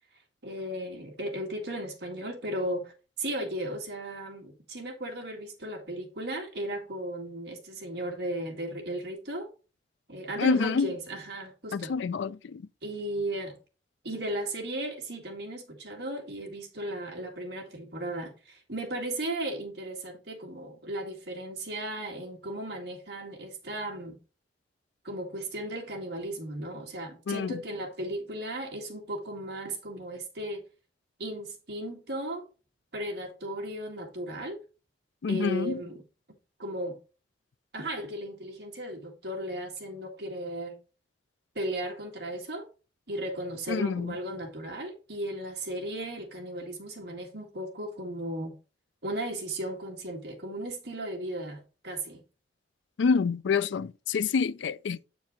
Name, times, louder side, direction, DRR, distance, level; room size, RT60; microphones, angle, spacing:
voice 1, 0.4-2.9 3.2-9.5 10.1-12.0 12.8-13.6 14.0-24.2 25.0-30.6 31.2-32.5 32.9-34.6 35.3-36.0 36.6-37.0 37.7-40.8 41.5-42.7 43.1-48.5 49.0-52.2, right 1 dB, 65° right, 2.1 m, -36 dB
voice 2, 10.4-10.9 11.7-12.6 27.3-27.6 35.2-35.8 43.7-44.1 53.0-55.0, left 5 dB, 80° left, 0.4 m, -27 dB
8.4 x 4.5 x 3.9 m
head